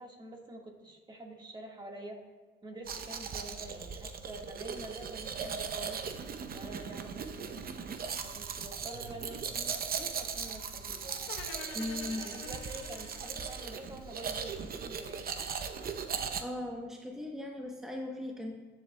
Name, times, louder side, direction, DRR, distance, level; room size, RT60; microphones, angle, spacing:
voice 1, 0.0-2.2 2.6-6.0 6.5-7.6 8.2-11.2 12.0-15.5, right 1 dB, 20° right, 1 dB, 1.6 m, -47 dB
Domestic sounds home sounds, 2.9-16.4, right 6 dB, 50° right, 0.7 m, -38 dB
sound 1, 11.3-14.4, left 5 dB, 90° left, 1.0 m, -47 dB
voice 2, 11.7-12.3 16.4-18.5, left 1 dB, ahead, 0 dB, 0.9 m, -38 dB
14.5 x 7.5 x 2.2 m, 1.3 s
cardioid pair, 90°, 20 cm